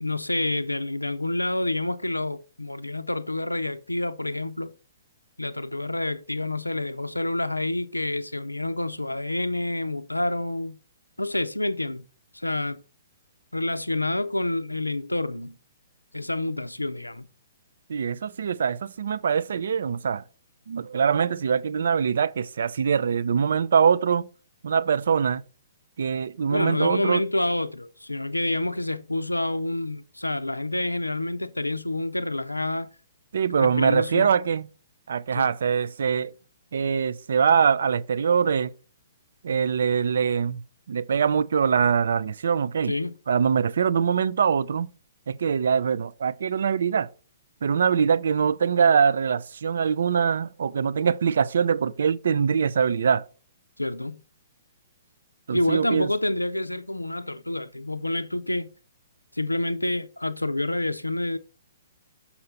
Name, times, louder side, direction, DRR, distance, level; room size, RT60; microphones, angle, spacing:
voice 1, 0.0-4.7 5.4-10.8 11.2-12.0 12.3-12.8 13.5-15.5 16.1-17.3 26.5-32.9 33.6-34.3 35.3-35.5 42.9-43.2 53.8-54.2 55.5-58.7 59.3-61.4, left 1 dB, 90° left, 0.4 m, -28 dB
voice 2, 17.9-20.2 20.7-24.3 24.6-25.4 26.0-27.2 33.3-34.7 35.1-36.3 36.7-38.7 39.4-40.6 40.9-42.9 43.3-44.9 45.3-47.1 47.6-53.2 55.5-56.1, right 6 dB, 60° right, 0.4 m, -23 dB
6.6 x 4.2 x 5.5 m
figure-of-eight pair, 120°, 0 cm